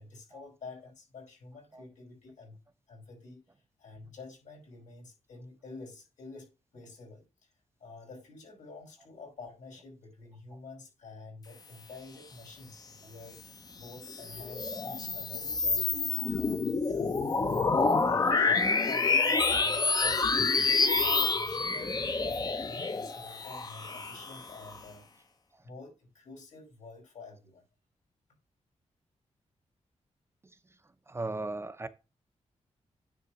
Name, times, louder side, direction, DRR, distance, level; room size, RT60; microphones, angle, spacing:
voice 1, 0.0-2.6 2.9-3.4 3.8-7.2 7.8-13.4 13.8-15.9 16.3-17.2 18.0-25.0 25.6-27.6, left 3 dB, 85° left, 6.0 m, -48 dB
sound 1, 13.9-24.8, left 4 dB, 30° left, 0.8 m, -28 dB
voice 2, 30.4-30.8 31.1-31.9, right 2 dB, 20° right, 0.7 m, -39 dB
9.7 x 3.7 x 6.1 m
wide cardioid pair, 155°, 12 cm